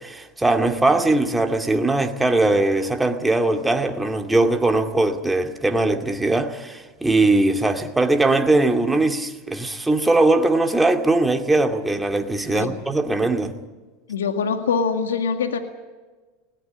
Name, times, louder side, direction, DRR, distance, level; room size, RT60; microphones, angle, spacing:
voice 1, 0.0-13.5, right 2 dB, 10° right, 2.4 m, -20 dB
voice 2, 14.1-15.6, left 5 dB, 85° left, 2.0 m, -23 dB
20.5 x 18.0 x 9.8 m
hypercardioid pair, 90°, 0 cm